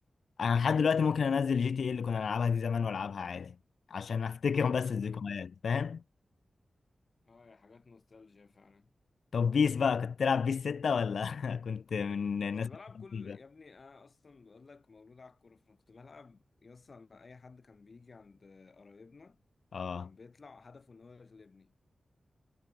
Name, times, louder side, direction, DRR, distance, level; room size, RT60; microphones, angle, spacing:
voice 1, 0.4-3.6 3.9-6.0 9.3-12.7 13.1-13.4 19.7-20.1, left 6 dB, 70° left, 0.5 m, -30 dB
voice 2, 7.3-8.9 12.5-19.4 20.0-21.8, left 4 dB, 40° left, 7.2 m, -55 dB
wide cardioid pair, 170°, 0 cm